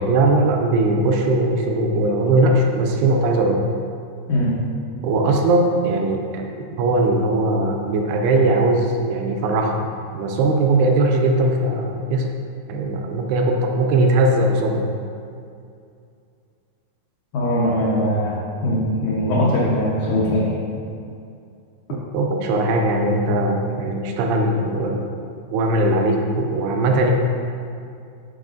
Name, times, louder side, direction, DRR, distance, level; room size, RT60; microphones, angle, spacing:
voice 1, 0.1-3.6 5.0-6.5 6.8-12.3 12.7-14.9 21.9-25.1 25.5-27.1, right 2 dB, 80° right, 2 dB, 2.5 m, -19 dB
voice 2, 4.3-4.6 17.3-18.4 18.6-20.5, equal, 75° left, -8 dB, 1.9 m, -20 dB
11.5 x 4.0 x 2.6 m, 2.4 s
omnidirectional pair, 4.7 m